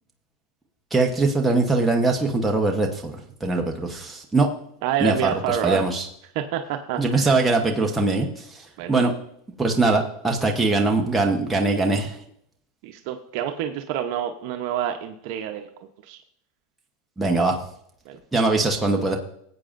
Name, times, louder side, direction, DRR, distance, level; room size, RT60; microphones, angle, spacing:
voice 1, 0.9-4.5 5.0-6.1 7.0-9.1 9.6-12.2 17.2-17.6 18.3-19.2, right 3 dB, 5° right, 0 dB, 1.0 m, -22 dB
voice 2, 4.8-5.8 6.3-7.4 8.8-9.0 9.8-9.9 12.8-15.7 16.0-16.2 18.1-18.2, right 10 dB, 60° right, 5 dB, 0.8 m, -28 dB
16.5 x 8.5 x 2.5 m, 0.70 s
supercardioid pair, 140°, 0 cm